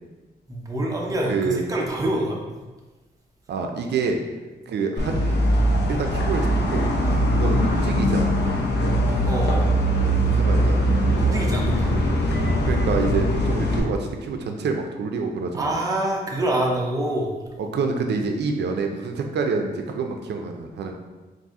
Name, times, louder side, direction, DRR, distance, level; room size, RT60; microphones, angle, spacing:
voice 1, 0.5-2.4 7.4-7.6 9.3-9.7 11.2-12.0 15.5-17.3, right 1 dB, 20° right, -1 dB, 0.6 m, -26 dB
voice 2, 1.3-1.7 3.5-4.2 4.7-5.4 5.9-6.9 7.3-8.4 10.2-10.9 12.6-15.7 17.6-20.9, right 4 dB, 90° right, 4 dB, 0.4 m, -27 dB
sound 1, 5.0-13.8, equal, 90° left, 0.6 m, -21 dB
4.0 x 2.6 x 3.6 m, 1.2 s
wide cardioid pair, 150°, 17 cm